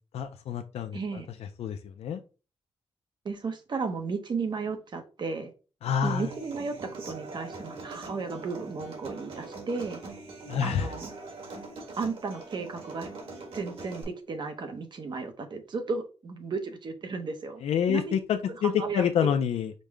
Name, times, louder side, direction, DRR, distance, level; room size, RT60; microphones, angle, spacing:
voice 1, 0.1-1.2 1.6-2.2 5.8-6.3 10.4-10.9 17.6-19.7, left 8 dB, 85° left, 8 dB, 0.4 m, -27 dB
voice 2, 0.9-1.3 3.2-5.5 6.0-10.0 10.6-11.1 11.9-13.1 13.5-17.6 17.9-18.1 18.8-19.3, right 4 dB, 45° right, 7 dB, 0.7 m, -34 dB
Human voice / Acoustic guitar, 6.0-14.0, right 3 dB, 65° right, 1.6 m, -42 dB
5.2 x 2.1 x 4.6 m, 0.33 s
wide cardioid pair, 140°, 10 cm